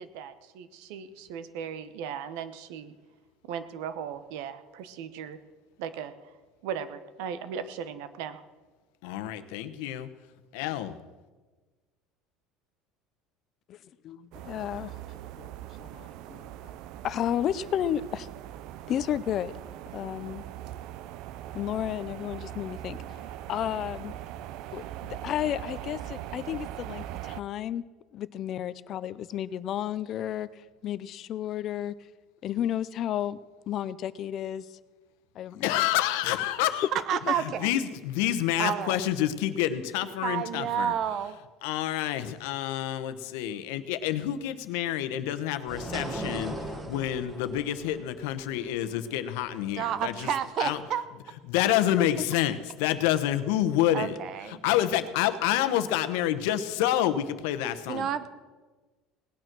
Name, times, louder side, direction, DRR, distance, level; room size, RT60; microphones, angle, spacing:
voice 1, 0.0-2.9 3.4-5.4 5.8-6.1 6.6-8.4, right 7 dB, 75° right, 12 dB, 1.1 m, -37 dB
voice 2, 9.0-10.1 10.5-11.0 35.6-36.9 37.3-37.8 38.1-40.9 41.6-46.5 46.8-50.3 50.6-50.8 51.5-54.2 54.5-58.1, left 12 dB, 85° left, 11 dB, 1.0 m, -28 dB
voice 3, 14.0-15.0 15.4-15.5 15.8-16.5 17.0-18.3 18.9-19.6 19.9-20.4 21.5-23.0 23.5-24.1 24.7-27.8 28.1-30.5 30.8-31.9 32.4-33.4 33.7-34.7 35.4-35.9 37.1-37.3 52.0-52.1, left 11 dB, 40° left, 16 dB, 0.5 m, -32 dB
sound 1, 14.3-27.4, right 12 dB, 60° right, 0.5 m, -41 dB
voice 4, 36.9-37.4 38.6-39.0 40.2-41.4 49.8-51.0 53.9-54.6 57.9-58.3, right 9 dB, 40° right, 14 dB, 0.9 m, -29 dB
sound 2, 45.7-50.9, right 1 dB, 15° right, 1.5 m, -39 dB
18.0 x 9.3 x 6.1 m, 1.3 s
cardioid pair, 155°, 0 cm